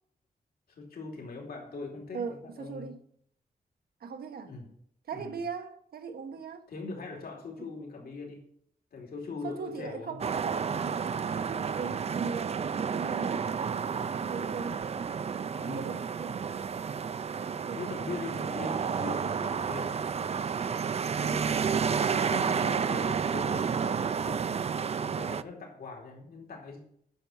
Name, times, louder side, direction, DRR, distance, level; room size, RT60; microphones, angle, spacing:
voice 1, 0.7-2.9 4.5-4.6 5.1-5.4 6.7-8.4 8.9-10.2 10.7-10.9 15.5-15.9 17.7-20.0 22.1-24.5 25.0-26.8, left 3 dB, 85° left, 2.8 m, -41 dB
voice 2, 2.1-3.0 4.0-4.5 5.1-6.7 7.6-7.9 9.4-11.0 11.4-15.2 15.6-16.8 17.5-18.6 20.9-21.5, right 5 dB, 90° right, 1.2 m, -40 dB
sound 1, 10.2-25.4, right 6 dB, 45° right, 0.4 m, -31 dB
9.3 x 6.4 x 7.1 m
wide cardioid pair, 120°, 15 cm